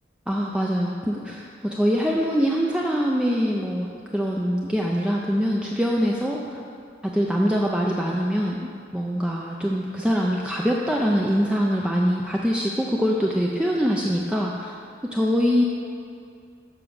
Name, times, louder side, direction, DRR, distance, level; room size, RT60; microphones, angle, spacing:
voice 1, 0.3-6.6 7.0-14.7 15.1-15.6, equal, 5° right, -2 dB, 0.5 m, -23 dB
7.0 x 5.8 x 6.4 m, 2.3 s
head